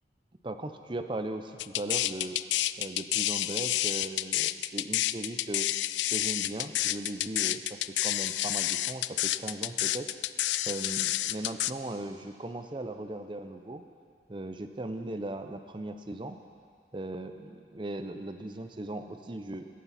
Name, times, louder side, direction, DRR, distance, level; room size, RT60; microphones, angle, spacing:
voice 1, 0.4-2.4 2.8-5.7 6.1-10.1 10.7-13.8 14.3-16.4 16.9-19.7, right 2 dB, 30° right, 7 dB, 0.6 m, -38 dB
sound 1, 1.6-11.7, left 15 dB, 85° left, 0.3 m, -29 dB
21.0 x 8.5 x 4.2 m, 2.1 s
head